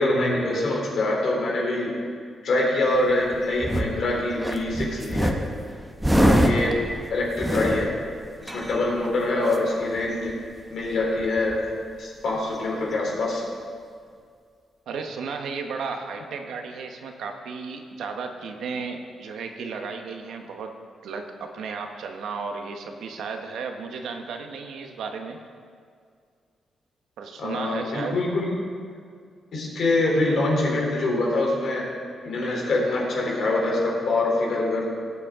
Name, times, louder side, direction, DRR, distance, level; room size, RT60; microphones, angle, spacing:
voice 1, 0.0-2.0 2.4-5.3 6.1-6.8 7.1-7.9 8.4-10.3 10.7-11.6 12.0-13.4 27.4-28.5 29.5-31.9 32.2-34.9, left 2 dB, 65° left, -2 dB, 3.4 m, -24 dB
sound 1, 3.0-4.0 4.4-9.1 9.5-9.6 9.8-10.3 10.6-10.7 10.8-11.7 12.6-12.7, equal, 5° right, 0.8 m, -25 dB
voice 2, 14.9-20.8 21.0-25.4 27.2-28.1, right 5 dB, 90° right, 4 dB, 1.1 m, -34 dB
18.0 x 8.4 x 3.7 m, 2.1 s
cardioid pair, 135°, 0 cm